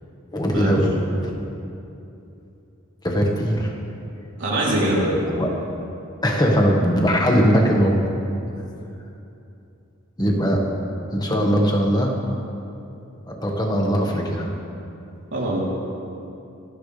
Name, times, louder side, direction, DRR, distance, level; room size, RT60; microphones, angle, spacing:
voice 1, 0.3-0.9 1.2-1.3 3.0-3.7 5.3-5.5 6.2-8.0 10.2-10.6 11.1-12.2 13.3-14.5, equal, 20° left, 0 dB, 1.6 m, -20 dB
voice 2, 4.4-5.1 15.3-15.6, right 1 dB, 55° right, -5 dB, 3.7 m, -22 dB
27.0 x 10.5 x 3.4 m, 2.8 s
head